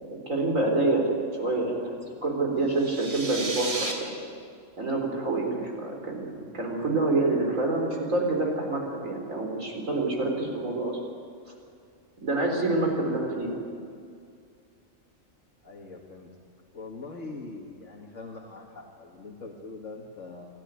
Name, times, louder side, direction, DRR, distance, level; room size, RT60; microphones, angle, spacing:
voice 1, 0.3-1.1 1.4-1.9 2.2-4.2 4.8-11.0 12.2-13.6, right 2 dB, 85° right, 1 dB, 4.3 m, -27 dB
sound 1, 2.7-3.9, right 2 dB, 50° right, 3.4 m, -33 dB
voice 2, 12.9-13.4 15.6-16.3 16.7-20.5, left 3 dB, 70° left, -1 dB, 2.3 m, -42 dB
28.5 x 12.5 x 9.6 m, 2.3 s
omnidirectional pair, 1.3 m